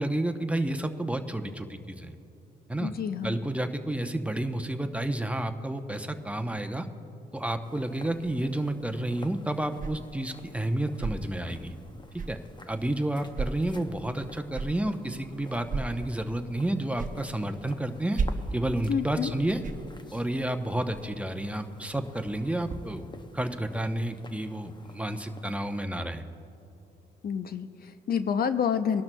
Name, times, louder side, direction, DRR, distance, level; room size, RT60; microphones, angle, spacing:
voice 1, 0.0-2.1 2.7-2.9 3.2-6.9 7.3-11.7 12.3-12.4 12.7-18.2 18.5-19.6 20.1-23.0 23.3-26.2, right 1 dB, 5° right, 6 dB, 0.7 m, -30 dB
voice 2, 2.8-3.4 18.9-19.3 27.2-29.0, left 7 dB, 60° left, 10 dB, 0.6 m, -28 dB
sound 1, 7.6-25.9, left 2 dB, 25° left, 0.8 m, -51 dB
sound 2, 8.7-22.8, right 4 dB, 50° right, 0.9 m, -39 dB
23.5 x 12.0 x 2.2 m, 2.8 s
cardioid pair, 65°, 18 cm